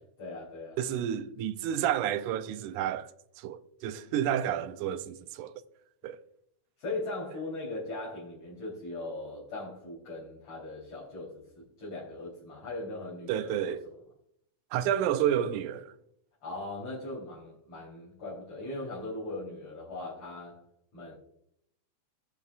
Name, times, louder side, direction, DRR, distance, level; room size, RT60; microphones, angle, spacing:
voice 1, 0.2-0.8 6.8-13.8 16.4-20.6 20.9-21.2, left 2 dB, 55° left, 4.6 m, -39 dB
voice 2, 0.8-3.1 3.4-5.5 6.0-6.2 13.3-13.9 14.7-15.9, right 10 dB, 90° right, 2.1 m, -30 dB
20.5 x 6.8 x 2.4 m
omnidirectional pair, 3.5 m